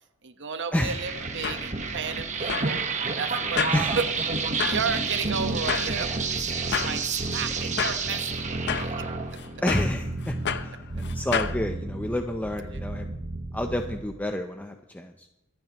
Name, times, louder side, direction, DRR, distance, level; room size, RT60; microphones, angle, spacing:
voice 1, 0.2-2.8 3.2-4.0 4.4-9.1 12.7-12.8, right 5 dB, 55° right, 8 dB, 1.1 m, -33 dB
sound 1, 0.9-14.0, right 4 dB, 35° right, 1.3 m, -30 dB
sound 2, 1.1-11.6, left 6 dB, 55° left, 0.7 m, -33 dB
voice 2, 9.6-10.3 10.6-13.1 13.5-15.3, left 1 dB, 5° left, 5 dB, 0.6 m, -29 dB
26.0 x 8.9 x 3.0 m, 1.0 s
head